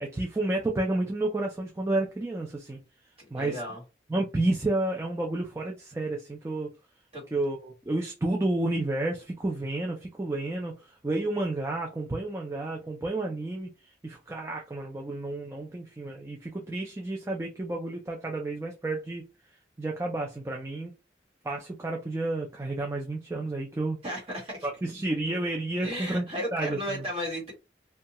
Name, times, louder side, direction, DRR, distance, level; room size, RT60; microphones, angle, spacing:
voice 1, 0.0-2.8 3.3-3.6 4.1-6.7 7.3-19.3 19.8-20.9 21.4-24.0 24.6-26.3 26.5-27.0, right 2 dB, 15° right, 0.3 m, -31 dB
voice 2, 3.2-3.8 7.1-7.2 24.0-24.7 25.8-27.5, equal, 30° right, 1.5 m, -34 dB
2.7 x 2.2 x 2.8 m
head